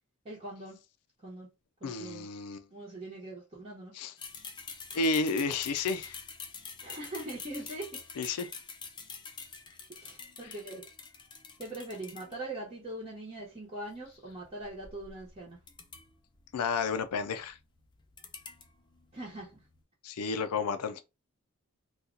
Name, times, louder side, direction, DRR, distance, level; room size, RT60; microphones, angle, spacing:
voice 1, 0.2-0.8 1.2-1.5 1.8-2.3 2.7-3.9 6.8-8.0 9.9-10.8 11.6-15.6 19.1-19.5, right 2 dB, 25° right, 1.0 m, -42 dB
voice 2, 1.8-2.6 4.0-4.1 4.9-6.2 8.2-8.5 16.5-17.6 20.0-21.0, left 4 dB, 85° left, 0.4 m, -31 dB
sound 1, 4.2-12.6 13.9-19.8, left 5 dB, 20° left, 0.4 m, -47 dB
2.7 x 2.3 x 3.7 m
head